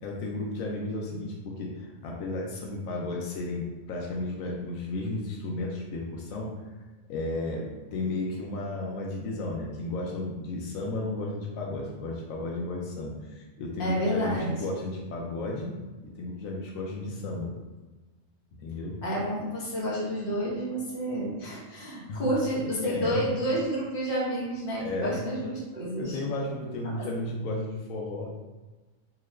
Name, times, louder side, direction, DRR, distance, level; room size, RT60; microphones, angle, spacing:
voice 1, 0.0-6.5 7.1-17.5 18.6-19.0 22.1-22.3 22.8-23.3 24.8-25.2 26.0-28.3, left 2 dB, 85° left, -1 dB, 1.0 m, -33 dB
voice 2, 13.8-14.6 19.0-26.2 27.0-27.1, equal, 45° left, -6 dB, 1.0 m, -30 dB
2.8 x 2.4 x 3.2 m, 1.2 s
omnidirectional pair, 1.4 m